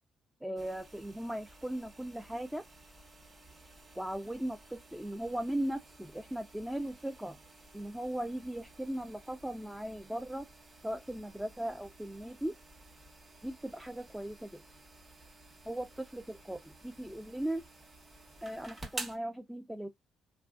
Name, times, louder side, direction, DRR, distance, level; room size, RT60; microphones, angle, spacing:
voice 1, 0.4-2.6 4.0-7.4 7.7-10.5 10.8-12.6 13.4-14.5 15.7-17.6 18.4-19.9, right 1 dB, 5° right, 0.4 m, -38 dB
sound 1, 0.6-19.2, right 2 dB, 30° right, 0.9 m, -52 dB
3.1 x 2.4 x 2.4 m
cardioid pair, 90°, 0 cm